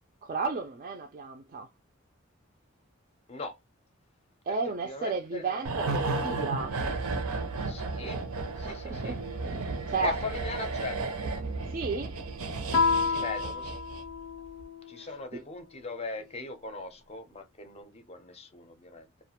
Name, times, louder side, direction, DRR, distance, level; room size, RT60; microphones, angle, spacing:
voice 1, 0.2-1.7 4.5-6.8 8.6-9.2 9.9-10.2 11.7-12.2 15.0-15.4, right 4 dB, 40° right, 0.3 m, -33 dB
voice 2, 4.8-5.6 7.7-8.2 8.6-9.2 10.0-11.0 13.0-13.8 14.9-19.1, left 3 dB, 30° left, 0.5 m, -39 dB
sound 1, 5.6-14.2 14.5-14.6, right 3 dB, 90° right, 0.5 m, -33 dB
Guitar, 12.7-15.2, left 4 dB, 80° left, 0.5 m, -29 dB
2.4 x 2.1 x 2.8 m
head